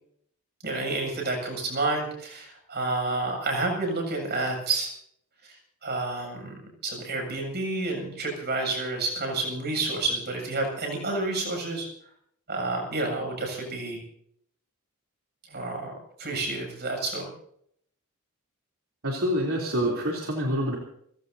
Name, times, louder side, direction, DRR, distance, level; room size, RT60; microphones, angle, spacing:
voice 1, 0.6-4.9 5.5-6.5 6.8-11.9 12.5-14.0 15.5-15.9 16.2-17.2, right 2 dB, 45° right, 2 dB, 7.5 m, -29 dB
voice 2, 19.0-20.8, equal, 65° right, -2 dB, 3.4 m, -26 dB
29.5 x 16.5 x 2.8 m, 0.68 s
head